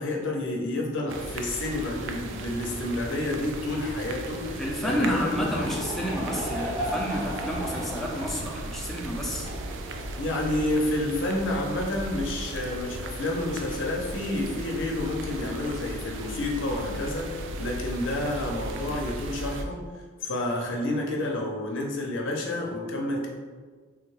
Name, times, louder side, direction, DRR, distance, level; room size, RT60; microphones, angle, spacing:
voice 1, 0.0-5.8 10.2-19.8 20.2-23.3, left 1 dB, 70° left, -1 dB, 0.6 m, -29 dB
sound 1, 1.1-19.6, right 2 dB, 65° right, 0.3 m, -36 dB
voice 2, 4.6-9.5, equal, ahead, -3 dB, 0.5 m, -30 dB
Laughter / Crowd, 4.8-10.6, equal, 20° right, 0.8 m, -36 dB
3.4 x 2.2 x 3.1 m, 1.5 s
head